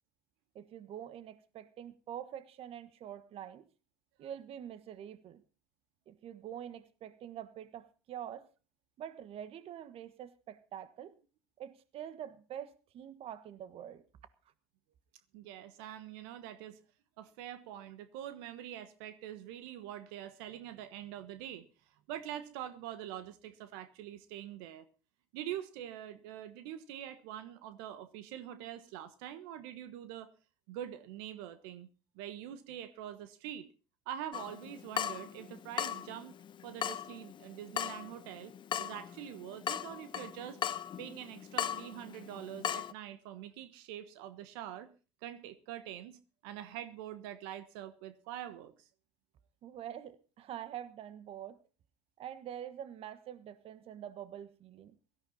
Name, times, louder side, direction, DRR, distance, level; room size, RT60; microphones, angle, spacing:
voice 1, 0.5-3.7 4.2-5.4 6.1-8.5 9.0-11.1 11.6-14.0 49.6-51.6 52.2-55.0, right 10 dB, 50° right, 1.3 m, -45 dB
voice 2, 15.3-16.8 17.2-21.7 22.1-24.8 25.3-30.3 30.7-31.9 32.1-33.7 34.0-36.4 36.6-38.5 38.8-40.6 41.0-44.9 45.2-48.9, right 11 dB, 75° right, 1.3 m, -44 dB
Water tap faucet / Drip, 34.3-42.9, left 9 dB, 40° left, 0.9 m, -39 dB
17.0 x 13.5 x 4.0 m
hypercardioid pair, 85°, 13 cm